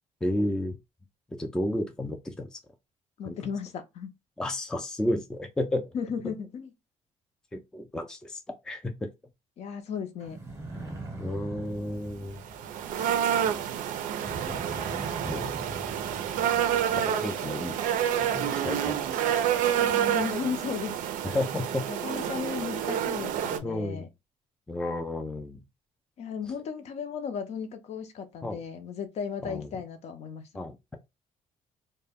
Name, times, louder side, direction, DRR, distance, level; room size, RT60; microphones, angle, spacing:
voice 1, 0.2-0.8 1.4-2.6 3.2-3.4 4.4-5.9 7.5-9.1 11.2-12.4 14.4-14.6 15.2-15.6 17.0-17.8 18.2-19.3 21.3-21.9 23.6-24.1 24.7-25.6 28.4-28.6 29.4-29.7 30.5-30.7, left 1 dB, 5° left, 0.3 m, -32 dB
voice 2, 3.2-4.1 5.9-6.7 9.6-10.4 19.8-21.0 21.9-24.1 26.2-30.4, left 6 dB, 55° left, 0.5 m, -35 dB
sound 1, 10.2-13.3 14.2-16.9, right 2 dB, 20° right, 0.7 m, -41 dB
sound 2, 12.4-23.6, right 9 dB, 80° right, 0.4 m, -28 dB
2.1 x 2.1 x 3.4 m
cardioid pair, 150°, 13 cm